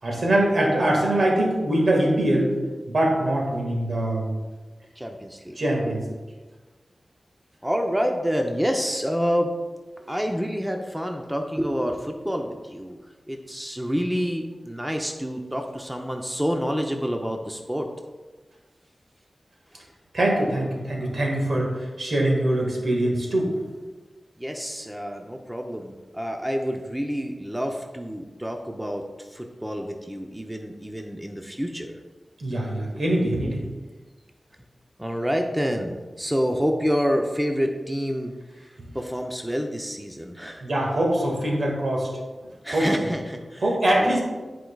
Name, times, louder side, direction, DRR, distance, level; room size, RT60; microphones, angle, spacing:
voice 1, 0.0-2.6 2.9-4.3 5.6-6.0 20.1-23.5 32.4-33.6 40.6-42.1 42.7-42.9 43.6-44.2, right 1 dB, 70° right, -1 dB, 1.7 m, -23 dB
voice 2, 5.0-5.6 7.6-9.5 10.1-13.0 13.3-17.9 24.4-32.0 35.0-38.3 38.9-40.7 42.6-43.6 44.0-44.1, equal, 10° right, 3 dB, 0.6 m, -28 dB
11.0 x 4.6 x 2.3 m, 1.3 s
wide cardioid pair, 55°, 0 cm